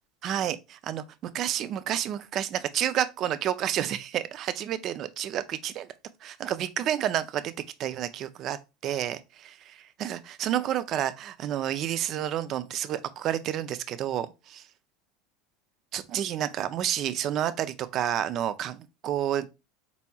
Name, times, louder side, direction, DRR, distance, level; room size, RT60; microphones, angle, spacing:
voice 1, 0.2-5.9 6.2-7.5 7.8-14.6 15.9-19.5, right 11 dB, 50° right, 0.5 m, -30 dB
4.4 x 4.1 x 2.3 m
hypercardioid pair, 95°, 0 cm